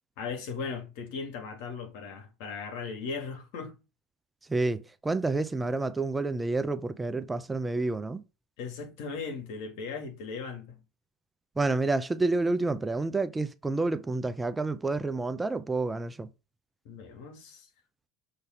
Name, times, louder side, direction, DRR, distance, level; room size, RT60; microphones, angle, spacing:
voice 1, 0.2-3.8 8.6-10.8 16.8-17.7, left 5 dB, 65° left, 2.1 m, -38 dB
voice 2, 4.5-8.2 11.6-16.3, right 3 dB, 15° right, 0.5 m, -29 dB
6.8 x 3.3 x 4.6 m
hypercardioid pair, 85°, 0 cm